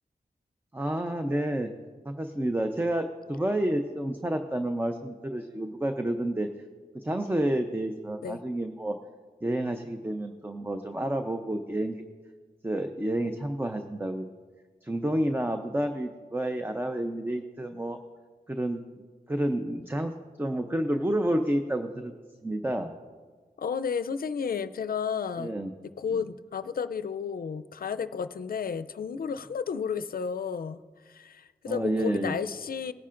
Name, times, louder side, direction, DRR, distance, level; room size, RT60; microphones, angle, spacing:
voice 1, 0.7-1.7 2.1-6.5 6.9-9.0 9.4-12.0 12.6-14.3 14.8-18.0 18.5-18.8 19.3-20.1 20.4-22.1 22.4-22.9 25.4-25.7 26.1-26.2 31.7-32.4, right 1 dB, 15° right, 6 dB, 0.6 m, -29 dB
voice 2, 23.6-25.5 26.0-30.8 31.1-32.9, left 6 dB, 70° left, 13 dB, 0.5 m, -32 dB
19.5 x 10.0 x 2.5 m, 1.5 s
wide cardioid pair, 95°, 16 cm